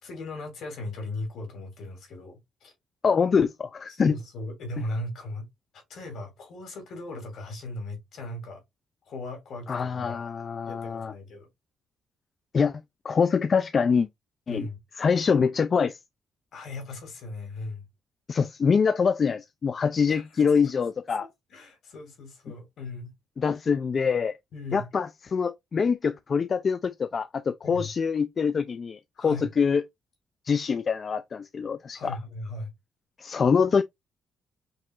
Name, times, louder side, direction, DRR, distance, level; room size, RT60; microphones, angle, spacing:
voice 1, 0.0-2.7 3.9-5.5 5.7-8.6 9.1-10.3 10.6-11.5 14.5-14.8 16.5-17.8 20.1-20.4 21.2-23.1 24.5-24.9 27.6-27.9 29.2-29.5 31.9-32.7, left 2 dB, 70° left, 2.3 m, -38 dB
voice 2, 3.0-4.2 9.7-11.1 12.5-14.1 14.5-14.7 15.0-16.0 18.3-21.3 23.4-24.3 24.7-29.8 30.5-32.2 33.2-33.8, left 6 dB, 45° left, 0.3 m, -25 dB
5.3 x 2.8 x 2.4 m
cardioid pair, 90°, 0 cm